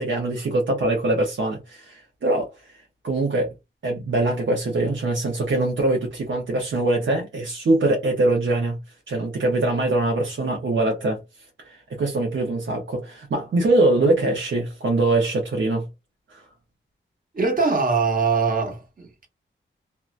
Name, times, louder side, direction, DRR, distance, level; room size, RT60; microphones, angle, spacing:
voice 1, 0.0-2.5 3.0-3.5 3.8-8.8 9.1-11.2 11.6-15.8 16.3-16.4, right 2 dB, 70° right, 0.7 m, -23 dB
voice 2, 17.3-19.3, right 4 dB, 45° right, 1.1 m, -22 dB
2.7 x 2.2 x 2.4 m
wide cardioid pair, 110°, 20 cm